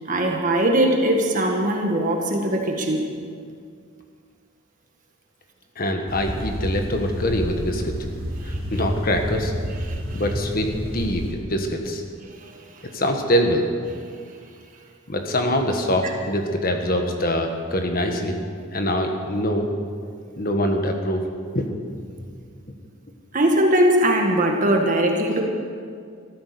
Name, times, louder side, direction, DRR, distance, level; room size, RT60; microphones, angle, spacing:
voice 1, 0.1-3.0 8.4-8.6 9.9-10.2 12.4-12.6 16.0-16.1 23.3-25.4, right 1 dB, 35° right, 1 dB, 1.7 m, -21 dB
voice 2, 5.7-7.9 8.4-9.5 10.1-12.0 12.9-13.7 15.1-18.4 18.7-19.7 20.4-21.2 21.5-21.7, equal, 40° left, 4 dB, 1.6 m, -24 dB
sound 1, 6.1-11.3, equal, 75° right, 3.5 m, -30 dB
14.0 x 14.0 x 6.9 m, 2.2 s
head